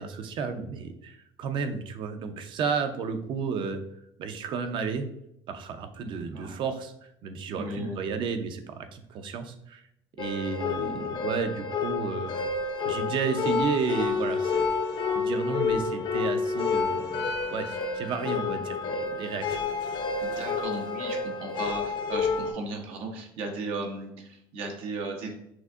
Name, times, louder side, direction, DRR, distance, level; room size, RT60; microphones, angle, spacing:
voice 1, 0.0-3.8 4.2-5.1 5.5-6.9 7.2-9.8 10.2-12.5 12.8-14.7 15.1-19.6, right 5 dB, 55° right, 8 dB, 0.6 m, -32 dB
voice 2, 6.0-6.6 7.6-8.0 20.2-25.3, right 2 dB, 85° right, 2 dB, 1.0 m, -36 dB
sound 1, 10.2-22.5, left 4 dB, 50° left, 0.6 m, -29 dB
6.0 x 2.7 x 2.5 m, 0.77 s
cardioid pair, 115°, 10 cm